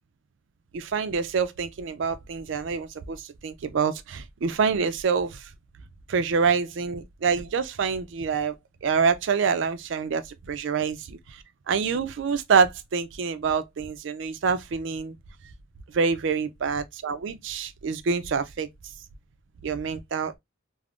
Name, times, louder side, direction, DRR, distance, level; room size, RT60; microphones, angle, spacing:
voice 1, 0.7-5.5 6.1-8.5 8.8-10.2 10.5-15.2 15.9-18.7 19.6-20.4, right 5 dB, 65° right, 0.4 m, -26 dB
3.5 x 2.0 x 2.3 m
head